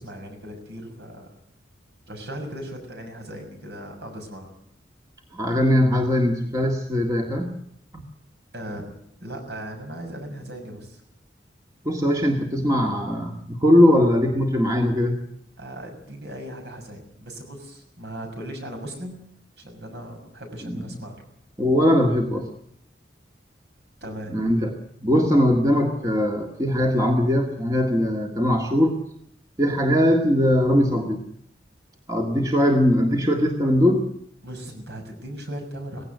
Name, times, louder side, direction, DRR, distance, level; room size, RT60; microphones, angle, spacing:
voice 1, 0.0-1.4 2.1-4.5 8.5-8.9 9.2-11.0 15.6-19.2 19.6-21.2 24.0-24.5 34.4-36.0, right 1 dB, 60° right, 4 dB, 6.4 m, -37 dB
voice 2, 5.3-7.6 7.9-8.0 11.8-15.2 20.6-21.0 21.6-22.5 24.3-24.7 25.0-29.0 29.6-31.2 32.1-34.1, equal, 20° right, 2 dB, 1.8 m, -20 dB
18.5 x 16.5 x 9.3 m, 0.72 s
head